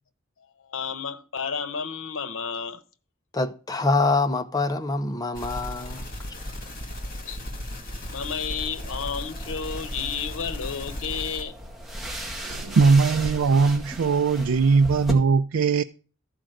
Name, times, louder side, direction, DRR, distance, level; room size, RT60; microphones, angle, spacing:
voice 1, 0.4-2.8 7.2-7.4 8.1-11.6, left 6 dB, 80° left, 0.9 m, -32 dB
voice 2, 3.3-6.1, left 3 dB, 20° left, 0.7 m, -25 dB
sound 1, 5.3-11.4, left 1 dB, 45° left, 2.6 m, -36 dB
sound 2, 8.5-15.1, equal, ahead, 1.9 m, -37 dB
voice 3, 12.4-15.8, right 4 dB, 90° right, 0.4 m, -20 dB
13.5 x 5.0 x 7.7 m
head